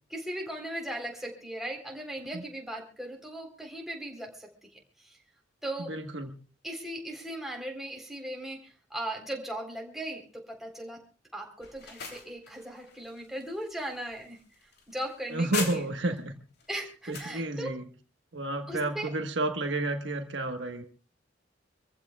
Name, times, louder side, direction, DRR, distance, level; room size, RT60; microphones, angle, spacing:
voice 1, 0.1-4.7 5.0-5.2 5.6-5.9 6.6-11.0 11.3-14.4 14.9-15.8 16.7-17.7 18.7-19.1, right 1 dB, ahead, 0 dB, 3.8 m, -38 dB
voice 2, 5.8-6.3 15.3-16.3 17.1-17.8 18.3-20.8, right 2 dB, 70° right, 5 dB, 1.4 m, -31 dB
sound 1, 11.6-16.2 16.6-17.4, left 5 dB, 60° left, 3.2 m, -41 dB
26.5 x 15.0 x 2.4 m, 0.36 s
head